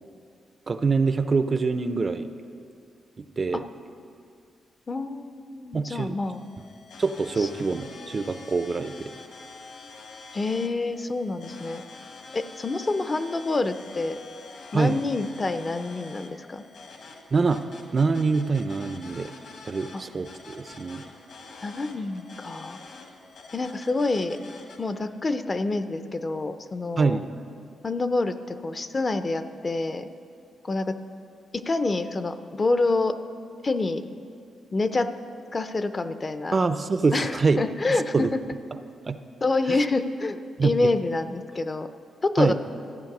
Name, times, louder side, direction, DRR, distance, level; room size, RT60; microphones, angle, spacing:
voice 1, 0.7-2.3 3.2-3.7 5.7-6.2 7.0-9.1 14.7-15.0 17.3-17.6 17.9-19.3 19.6-21.0 27.0-27.3 36.5-37.6 38.1-38.3 39.1-39.2 39.7-39.8 40.6-40.9 42.4-42.5, right 4 dB, 30° right, 10 dB, 0.5 m, -25 dB
voice 2, 4.9-6.4 7.4-7.5 10.3-11.8 12.3-14.2 14.7-16.6 19.9-20.0 21.6-22.8 23.5-24.4 24.8-27.2 27.8-30.1 30.6-30.9 31.5-33.2 33.6-34.0 34.7-35.1 35.5-36.6 37.1-38.4 39.4-41.9 42.2-42.5, left 3 dB, 25° left, 10 dB, 0.5 m, -27 dB
sound 1, 6.2-24.8, left 3 dB, 65° left, 1.5 m, -46 dB
14.0 x 9.0 x 6.0 m, 2.4 s
cardioid pair, 130°, 0 cm